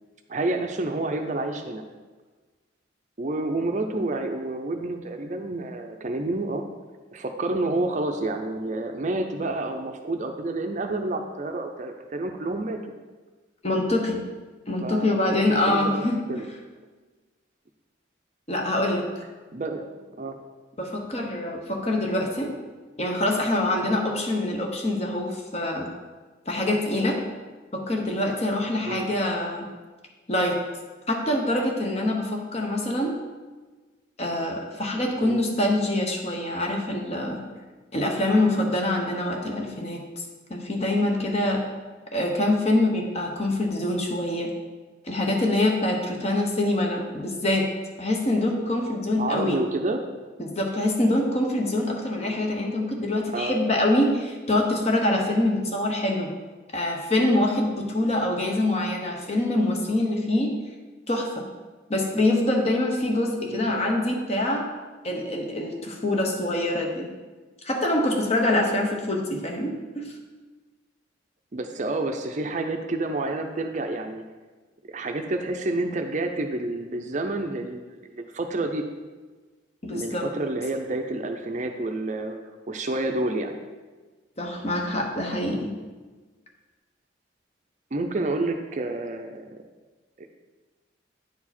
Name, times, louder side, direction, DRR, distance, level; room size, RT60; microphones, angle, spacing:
voice 1, 0.3-1.8 3.2-6.6 7.1-12.8 14.8-16.0 16.3-16.4 19.5-19.9 20.2-20.4 28.9-29.1 35.2-35.4 49.2-50.0 53.3-53.6 63.4-63.8 69.3-69.4 71.5-74.2 74.9-78.8 79.9-82.4 82.7-83.6 87.9-89.6 90.2-90.3, right 2 dB, 40° right, 5 dB, 0.5 m, -29 dB
voice 2, 13.6-14.2 14.7-16.5 18.5-19.0 20.8-22.5 23.0-25.9 26.5-27.2 27.7-29.7 30.3-30.6 31.1-33.1 34.2-37.4 37.9-40.2 40.5-41.6 42.1-44.5 45.0-47.7 48.0-49.6 50.4-56.3 56.7-60.5 61.1-61.5 61.9-64.6 65.0-67.1 67.6-70.1 79.8-80.2 84.4-85.7, left 1 dB, 35° left, 1 dB, 1.0 m, -25 dB
9.3 x 4.8 x 4.2 m, 1.3 s
head